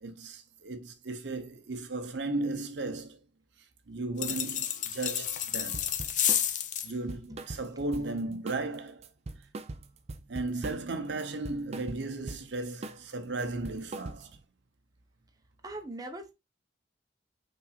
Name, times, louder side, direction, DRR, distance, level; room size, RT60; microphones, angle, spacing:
voice 1, 0.0-3.2 3.9-5.9 6.3-6.4 6.8-9.1 10.3-14.4, right 2 dB, 75° right, 0.8 m, -35 dB
sound 1, 4.2-6.9, left 10 dB, 45° left, 0.6 m, -30 dB
sound 2, 5.7-6.5 6.9-8.2 8.5-8.8 9.0-10.9 11.2-12.5 12.8-13.1 13.4-14.4, right 2 dB, 35° right, 0.4 m, -41 dB
voice 2, 15.6-16.3, right 1 dB, 20° right, 0.8 m, -40 dB
5.7 x 3.9 x 2.3 m
head